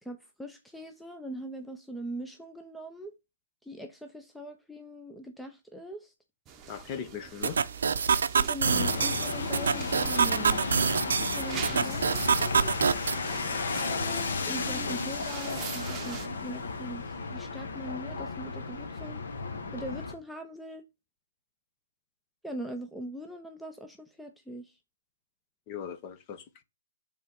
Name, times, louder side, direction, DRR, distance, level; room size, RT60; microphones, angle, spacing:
voice 1, 0.0-3.1 3.6-6.1 8.4-10.6 11.0-12.7 13.8-19.2 19.7-20.8 22.4-24.8, right 1 dB, ahead, 0.5 m, -41 dB
sound 1, 6.5-16.3, right 8 dB, 20° right, 0.9 m, -44 dB
voice 2, 6.7-7.6 25.7-26.6, left 7 dB, 30° left, 0.9 m, -39 dB
sound 2, 7.4-13.2, right 6 dB, 75° right, 0.6 m, -27 dB
sound 3, 8.7-20.1, left 4 dB, 65° left, 1.3 m, -34 dB
5.6 x 3.7 x 5.9 m
hypercardioid pair, 150°, 0 cm